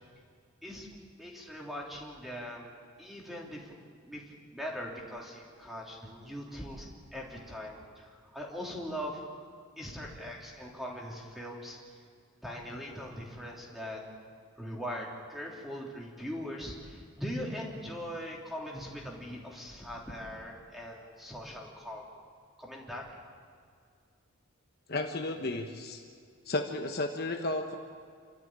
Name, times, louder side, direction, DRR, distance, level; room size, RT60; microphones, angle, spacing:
voice 1, 1.2-2.7 3.0-4.2 4.5-9.2 9.8-11.8 12.4-14.0 14.6-22.0 22.6-23.0, equal, ahead, -3 dB, 3.4 m, -41 dB
voice 2, 24.9-26.0 26.5-27.8, left 2 dB, 45° left, 3 dB, 1.2 m, -33 dB
28.5 x 13.5 x 8.9 m, 2.2 s
head